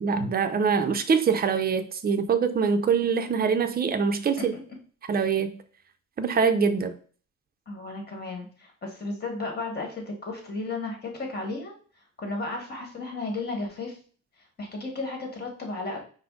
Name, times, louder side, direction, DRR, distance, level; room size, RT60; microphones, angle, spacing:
voice 1, 0.0-4.5 5.1-5.6 6.2-6.9, right 5 dB, 30° right, 0.5 m, -24 dB
voice 2, 7.7-11.7 12.2-14.0 14.6-16.0, left 3 dB, 30° left, 1.5 m, -34 dB
4.8 x 2.1 x 3.6 m
cardioid pair, 90°, 30 cm